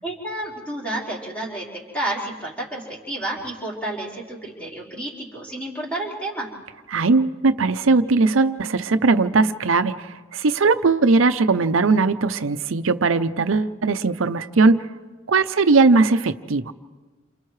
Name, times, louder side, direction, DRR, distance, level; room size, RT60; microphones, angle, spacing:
voice 1, 0.0-6.5, right 1 dB, 5° left, -5 dB, 4.5 m, -30 dB
voice 2, 6.9-14.9 15.3-16.7, right 3 dB, 85° right, 10 dB, 0.7 m, -19 dB
29.5 x 28.0 x 3.2 m, 1.4 s
head